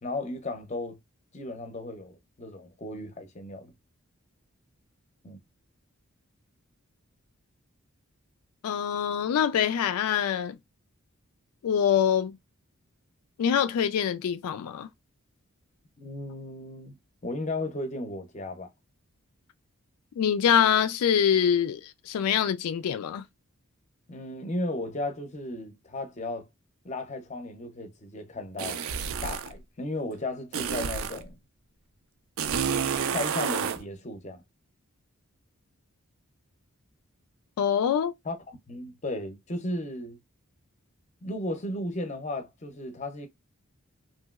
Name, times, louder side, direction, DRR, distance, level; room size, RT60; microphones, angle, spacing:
voice 1, 0.0-1.0 1.3-3.7 5.2-5.4 16.0-17.0 17.2-18.7 24.1-26.5 26.8-28.8 29.2-31.4 33.1-34.4 38.2-40.2 41.2-43.3, left 1 dB, 30° left, 0.6 m, -35 dB
voice 2, 8.6-10.6 11.6-12.4 13.4-14.9 20.2-23.2 37.6-38.1, left 8 dB, 85° left, 0.3 m, -25 dB
sound 1, 28.6-29.5 30.5-31.2 32.4-33.8, right 7 dB, 65° right, 0.4 m, -29 dB
2.9 x 2.7 x 2.3 m
head